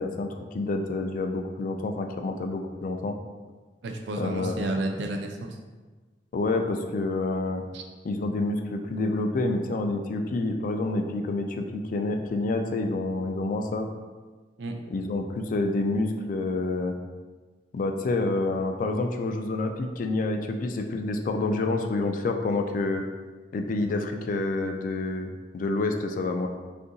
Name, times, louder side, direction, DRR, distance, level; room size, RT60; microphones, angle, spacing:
voice 1, 0.0-3.2 4.2-4.7 6.3-7.6 8.0-13.9 14.9-16.9 17.7-23.0 23.5-26.5, left 2 dB, 50° left, 5 dB, 0.3 m, -28 dB
voice 2, 3.8-5.6 7.7-7.8 14.6-14.8, right 2 dB, 80° right, 3 dB, 0.4 m, -31 dB
2.7 x 2.5 x 3.8 m, 1.3 s
head